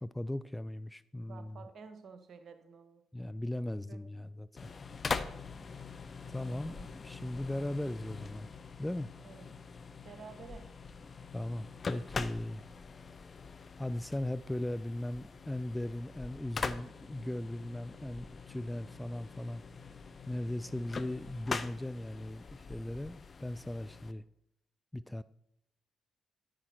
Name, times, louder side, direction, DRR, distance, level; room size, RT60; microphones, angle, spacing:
voice 1, 0.0-1.6 3.1-4.7 6.3-8.5 8.8-9.1 11.3-12.6 13.8-19.6 20.3-24.2 24.9-25.2, left 1 dB, 10° left, 15 dB, 0.3 m, -38 dB
voice 2, 1.2-3.0 3.9-4.0 6.4-6.9 9.2-9.5 10.0-10.6, right 5 dB, 45° right, 8 dB, 1.4 m, -51 dB
sound 1, 4.6-24.1, left 5 dB, 35° left, 0.7 m, -43 dB
10.0 x 9.6 x 4.5 m, 0.79 s
figure-of-eight pair, 40°, 0 cm